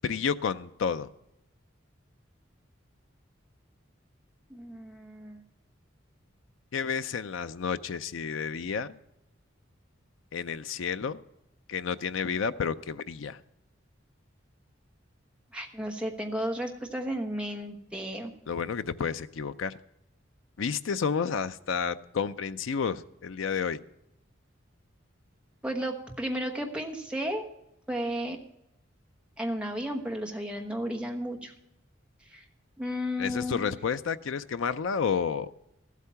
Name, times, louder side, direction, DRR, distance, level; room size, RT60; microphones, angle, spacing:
voice 1, 0.0-1.1 6.7-9.0 10.3-11.2 11.7-13.4 18.5-19.8 20.6-23.8 33.2-35.5, left 6 dB, 80° left, 13 dB, 0.5 m, -31 dB
voice 2, 4.5-5.4 15.5-18.3 25.6-27.4 27.9-28.4 29.4-31.5 32.3-32.4 32.8-33.6, equal, 5° right, 3 dB, 1.1 m, -33 dB
14.0 x 8.3 x 5.7 m, 0.86 s
head